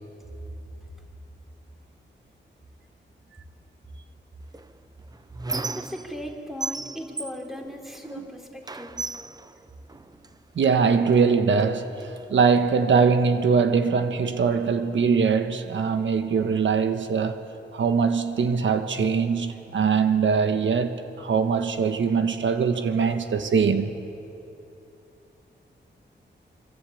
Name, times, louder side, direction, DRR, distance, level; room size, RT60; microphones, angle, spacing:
Squeak, 4.5-6.3 6.6-8.3 8.6-10.4 11.1-11.3 11.6-12.6, right 3 dB, 20° right, 0.6 m, -36 dB
voice 1, 5.7-9.1, equal, ahead, 3.2 m, -38 dB
voice 2, 10.6-17.4 17.7-23.9, right 5 dB, 90° right, 1.3 m, -22 dB
25.0 x 24.5 x 8.5 m
wide cardioid pair, 155°, 19 cm